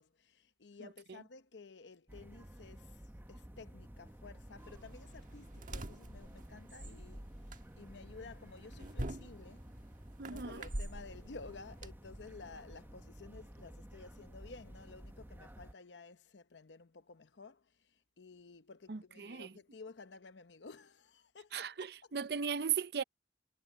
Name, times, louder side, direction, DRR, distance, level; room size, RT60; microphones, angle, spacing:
voice 1, 0.0-3.0 3.3-9.7 10.2-22.1, left 4 dB, 90° left, 0.8 m, -54 dB
sound 1, 2.1-15.7, equal, 10° right, 0.9 m, -52 dB
sound 2, 4.6-11.9, right 1 dB, 50° right, 1.4 m, -46 dB
voice 2, 10.2-10.6 18.9-19.5 21.5-23.0, right 7 dB, 65° right, 0.6 m, -37 dB
head